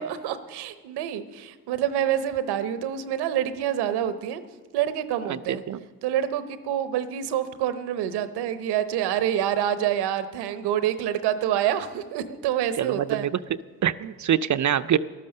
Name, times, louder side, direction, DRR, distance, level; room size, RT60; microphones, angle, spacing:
voice 1, 0.0-4.4 4.7-5.6 6.0-13.3, right 10 dB, 90° right, 11 dB, 0.8 m, -27 dB
voice 2, 5.3-5.9 12.8-13.3 13.8-15.0, right 10 dB, 50° right, 13 dB, 0.5 m, -25 dB
12.5 x 12.0 x 6.6 m, 1.3 s
supercardioid pair, 45°, 38 cm